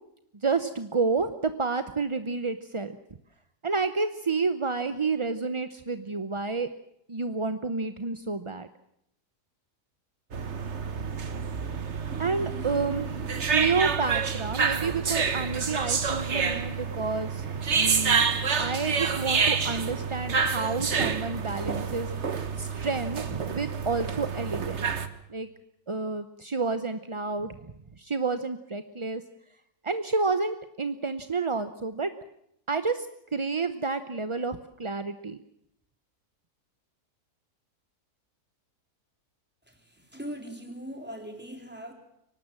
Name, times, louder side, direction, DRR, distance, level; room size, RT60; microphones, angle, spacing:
voice 1, 0.4-2.9 3.6-6.7 7.1-8.7 12.2-13.2 13.5-18.3 18.6-22.1 22.6-24.8 25.3-25.5 25.9-27.5 28.0-29.2 29.8-32.1 32.7-33.1 33.3-35.4, right 4 dB, 30° right, 10 dB, 0.6 m, -30 dB
sound 1, 10.3-25.1, right 5 dB, 45° right, 1.6 m, -28 dB
voice 2, 40.1-41.9, equal, 5° right, 3 dB, 3.9 m, -39 dB
24.0 x 19.0 x 7.5 m, 0.75 s
omnidirectional pair, 1.6 m